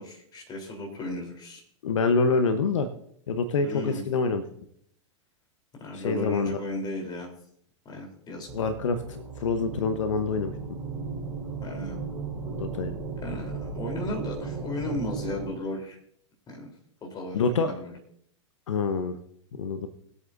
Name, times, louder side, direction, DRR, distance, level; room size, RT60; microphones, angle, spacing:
voice 1, 0.0-1.6 3.6-4.0 5.8-7.3 7.9-8.5 11.6-12.0 13.2-16.0 16.5-16.7 17.0-17.9, left 1 dB, 25° left, 2 dB, 3.6 m, -35 dB
voice 2, 1.8-2.9 3.3-4.4 5.9-6.6 8.5-10.5 12.6-12.9 17.3-17.7 18.7-19.1 19.6-19.9, left 4 dB, 75° left, 9 dB, 1.0 m, -26 dB
sound 1, 8.5-15.5, right 4 dB, 15° right, 4.5 m, -35 dB
21.0 x 8.2 x 2.6 m, 0.68 s
hypercardioid pair, 105°, 16 cm